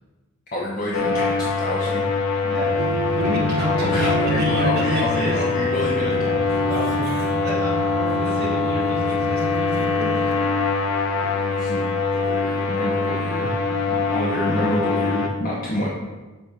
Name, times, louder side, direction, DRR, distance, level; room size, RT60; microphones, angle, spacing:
voice 1, 0.5-2.1 3.8-7.1 11.1-11.9 12.1-13.6 13.9-15.9, left 1 dB, 40° left, -4 dB, 0.8 m, -28 dB
sound 1, 0.9-15.3, left 4 dB, 80° left, 0.8 m, -23 dB
sound 2, 2.4-9.5, left 1 dB, 15° right, 0.8 m, -39 dB
voice 2, 2.5-2.8 3.2-5.4 7.4-10.5, equal, 45° right, -3 dB, 1.3 m, -29 dB
sound 3, 2.8-10.4, right 3 dB, 70° right, 0.8 m, -31 dB
6.8 x 4.4 x 4.7 m, 1.2 s
head